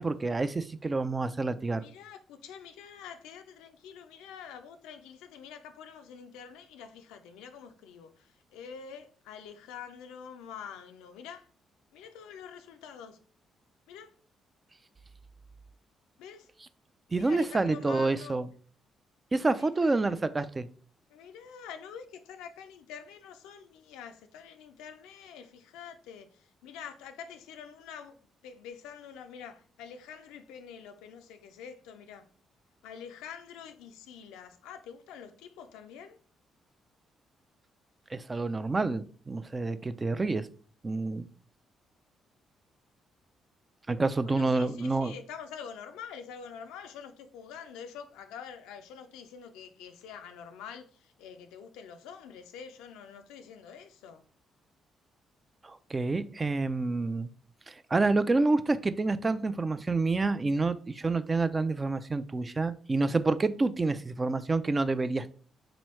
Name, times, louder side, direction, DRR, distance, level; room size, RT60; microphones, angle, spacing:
voice 1, 0.0-1.8 17.1-18.5 19.3-20.7 38.1-40.5 40.8-41.3 43.9-45.1 55.6-57.3 57.7-65.3, right 3 dB, 30° right, 0.3 m, -28 dB
voice 2, 1.7-11.5 11.9-13.2 13.9-14.1 16.2-16.5 17.1-18.4 19.6-20.0 21.1-28.2 28.4-32.3 32.8-36.2 44.3-54.2, left 7 dB, 85° left, 0.4 m, -46 dB
3.6 x 3.0 x 3.1 m
supercardioid pair, 55°, 0 cm